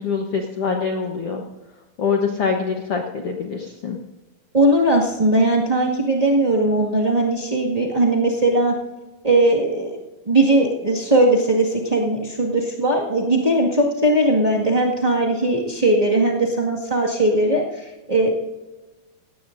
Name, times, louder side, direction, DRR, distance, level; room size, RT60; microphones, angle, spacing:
voice 1, 0.0-1.4 2.0-4.0, left 5 dB, 85° left, 2 dB, 1.3 m, -24 dB
voice 2, 4.5-8.8 9.2-10.0 10.2-18.3, right 1 dB, 75° right, -4 dB, 0.3 m, -19 dB
17.5 x 17.0 x 2.6 m, 1.2 s
omnidirectional pair, 4.4 m